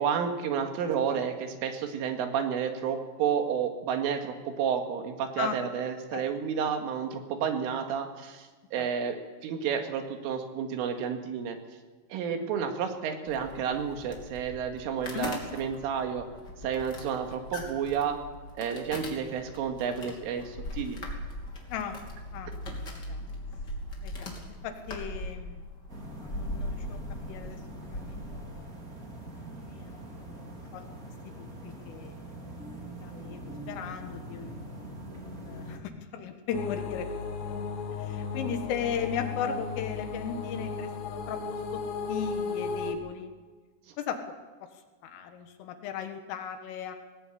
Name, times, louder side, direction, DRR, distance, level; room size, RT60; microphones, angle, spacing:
voice 1, 0.0-9.2 9.4-11.6 12.1-16.3 16.6-18.2 18.6-21.0 43.9-44.0, right 7 dB, 80° right, 5 dB, 4.4 m, -31 dB
sound 1, 13.3-28.6, left 1 dB, 25° left, 2.7 m, -40 dB
voice 2, 21.7-22.0 22.3-22.5 22.8-23.2 24.0-25.6 26.2-27.0 27.3-27.6 27.9-28.7 29.6-30.8 31.3-32.1 32.4-32.5 33.0-34.6 35.1-37.1 37.4-37.6 38.0-41.4 41.7-41.8 42.1-43.3 44.0-44.2 45.0-47.0, left 7 dB, 85° left, 7 dB, 4.1 m, -37 dB
sound 2, 25.9-35.8, right 1 dB, 25° right, 2.0 m, -43 dB
sound 3, 36.5-42.9, left 5 dB, 60° left, 3.6 m, -35 dB
19.5 x 18.0 x 8.7 m, 1.4 s
omnidirectional pair, 5.7 m